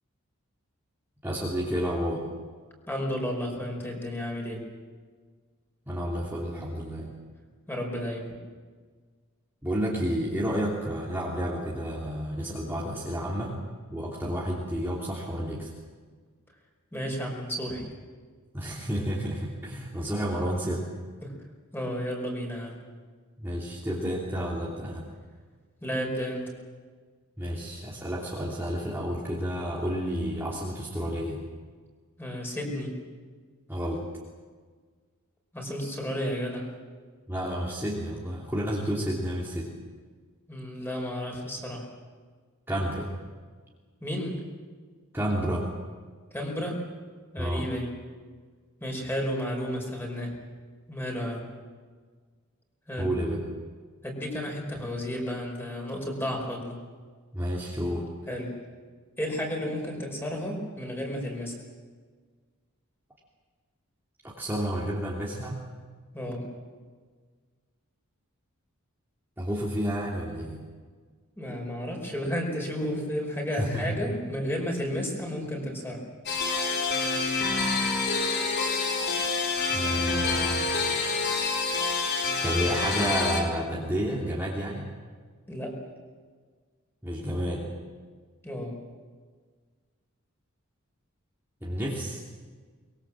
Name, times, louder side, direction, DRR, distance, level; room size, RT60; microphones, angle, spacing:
voice 1, 1.2-2.2 5.9-7.1 9.6-13.6 13.9-15.7 18.5-20.8 23.4-25.1 27.4-31.4 33.7-34.0 37.3-39.7 42.7-43.1 45.1-45.7 47.4-47.7 53.0-53.4 57.3-58.1 64.2-65.6 69.4-70.6 73.5-73.9 79.7-80.7 82.4-84.9 87.0-87.6 91.6-92.2, equal, 10° right, -5 dB, 2.9 m, -30 dB
voice 2, 2.9-4.6 7.7-8.3 16.9-17.9 21.2-21.3 21.7-22.8 25.8-26.5 32.2-33.0 35.5-36.7 40.5-41.9 44.0-44.4 46.3-46.8 47.3-47.9 48.8-50.3 50.9-51.5 52.9-53.1 54.0-56.8 58.3-58.6 59.2-61.6 66.1-66.5 71.4-76.0 85.5-85.8 88.4-88.8, equal, 10° left, 1 dB, 5.3 m, -32 dB
sound 1, 76.3-83.4, left 4 dB, 50° left, 3.9 m, -27 dB
23.5 x 22.5 x 7.6 m, 1.5 s
head